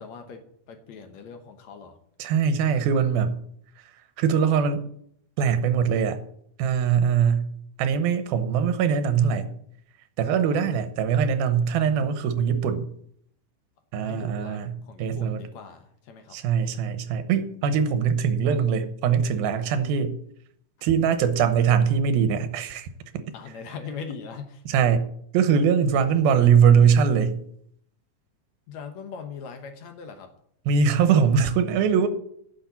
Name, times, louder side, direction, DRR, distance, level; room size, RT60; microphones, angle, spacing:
voice 1, 0.0-2.0 10.5-10.6 14.0-16.4 23.3-24.6 28.7-30.4, left 6 dB, 65° left, 6 dB, 1.9 m, -40 dB
voice 2, 2.2-3.4 4.2-4.8 5.4-6.2 6.6-7.5 7.8-9.5 10.2-12.9 13.9-14.7 15.0-15.4 16.3-20.1 20.8-22.9 23.1-23.2 24.7-25.1 25.3-27.4 30.7-32.1, right 7 dB, 90° right, 10 dB, 2.8 m, -22 dB
10.5 x 6.3 x 8.3 m, 0.67 s
omnidirectional pair, 4.2 m